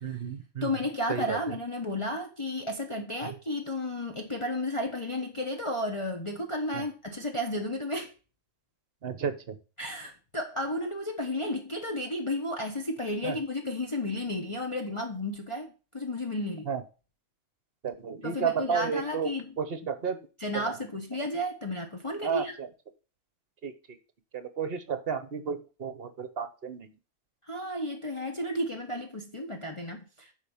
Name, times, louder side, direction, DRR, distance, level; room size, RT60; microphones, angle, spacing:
voice 1, 0.0-0.7 1.1-1.4 3.2-3.3 6.7-6.8 9.0-9.6 13.2-13.4 16.7-16.8 17.8-19.3 19.6-20.2 20.5-20.8 22.2-22.7 23.6-23.7 24.3-26.9, right 7 dB, 50° right, 1.2 m, -32 dB
voice 2, 0.6-8.1 9.8-16.7 18.2-19.6 20.4-22.6 27.5-30.3, left 1 dB, 25° left, 1.1 m, -33 dB
8.1 x 4.7 x 7.1 m
omnidirectional pair, 1.3 m